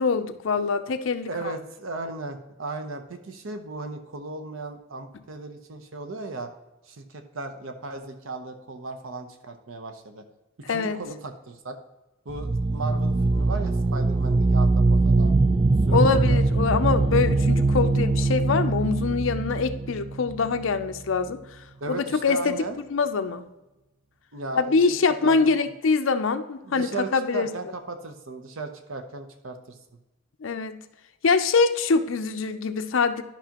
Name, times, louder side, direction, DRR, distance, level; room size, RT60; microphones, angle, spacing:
voice 1, 0.0-1.5 10.7-11.0 15.9-21.4 21.9-22.5 22.9-23.4 24.6-27.5 30.4-30.8 31.2-33.2, left 4 dB, 65° left, 8 dB, 0.5 m, -24 dB
voice 2, 1.3-6.5 6.8-10.2 10.7-11.7 12.2-15.3 15.9-16.4 21.8-22.8 24.3-24.8 25.2-25.4 26.6-29.8, right 3 dB, 75° right, 6 dB, 0.8 m, -36 dB
sound 1, 12.3-21.0, right 3 dB, 25° right, 0.4 m, -22 dB
11.5 x 5.7 x 2.9 m, 1.0 s
head